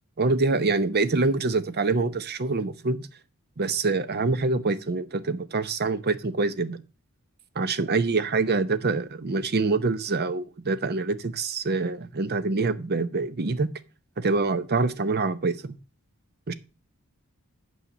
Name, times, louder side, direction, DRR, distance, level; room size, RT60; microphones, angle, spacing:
voice 1, 0.2-3.1 3.6-6.8 7.6-13.7 14.2-15.7 16.5-16.6, right 3 dB, 45° right, 0.7 m, -25 dB
8.6 x 5.7 x 6.1 m
head